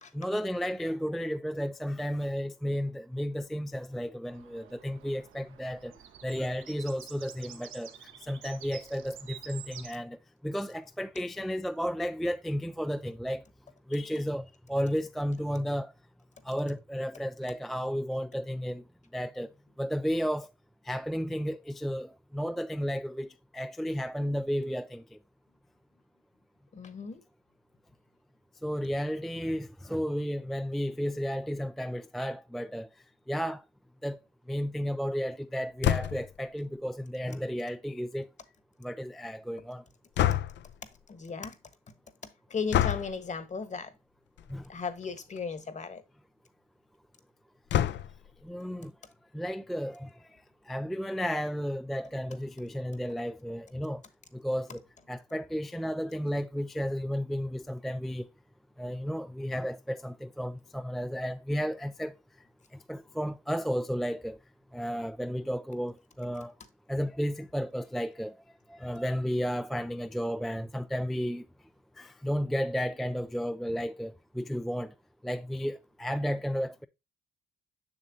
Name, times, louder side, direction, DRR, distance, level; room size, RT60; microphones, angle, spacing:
voice 1, 0.1-5.9 6.2-7.9 8.2-10.2 10.4-13.4 13.9-15.9 16.5-18.8 19.1-19.5 19.8-20.5 20.9-23.3 23.5-25.0 28.6-32.9 33.3-33.6 34.0-34.2 34.5-38.3 38.8-39.8 44.5-44.6 48.4-48.9 49.3-50.1 50.7-54.0 54.3-54.8 55.1-58.3 58.8-62.1 62.9-64.4 64.7-66.5 66.9-68.3 68.7-71.5 72.0-74.9 75.2-76.9, equal, ahead, 0.3 m, -33 dB
sound 1, 4.3-9.9, right 9 dB, 80° right, 1.1 m, -49 dB
voice 2, 26.7-27.2 41.1-41.5 42.5-43.9 44.7-46.0, left 5 dB, 35° left, 1.2 m, -36 dB
sound 2, 35.8-36.4 40.2-40.8 42.7-43.2 44.4-44.6 45.0-45.1 45.4-45.5 47.7-48.3, left 11 dB, 65° left, 0.5 m, -27 dB
7.2 x 6.4 x 2.7 m
cardioid pair, 90°, 20 cm